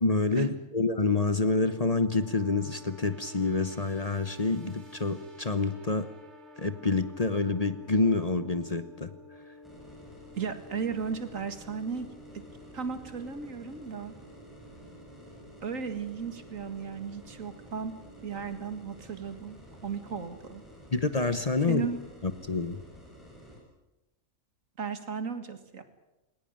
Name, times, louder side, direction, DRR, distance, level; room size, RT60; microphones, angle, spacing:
voice 1, 0.0-6.1 6.6-9.1 20.9-21.9 22.2-22.8, left 3 dB, 30° left, 11 dB, 1.0 m, -27 dB
sound 1, 1.2-18.9, left 1 dB, 55° right, 2.9 m, -52 dB
sound 2, 9.6-23.6, equal, ahead, 7.5 m, -51 dB
voice 2, 10.4-12.1 12.7-14.1 15.6-17.9 18.2-19.6 19.8-20.6 21.7-22.0 24.8-25.8, right 6 dB, 75° right, 9 dB, 2.3 m, -35 dB
20.5 x 19.5 x 8.9 m, 0.99 s
omnidirectional pair, 1.4 m